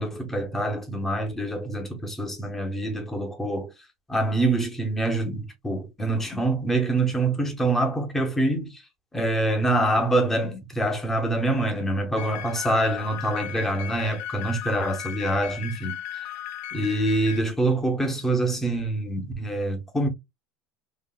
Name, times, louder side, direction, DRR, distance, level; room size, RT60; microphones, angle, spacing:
voice 1, 0.0-3.7 4.1-8.8 9.1-16.0 16.7-20.1, right 2 dB, 10° left, 0.9 m, -25 dB
sound 1, 12.2-17.4, left 11 dB, 55° left, 0.4 m, -36 dB
3.9 x 2.3 x 2.3 m
supercardioid pair, 150°, 3 cm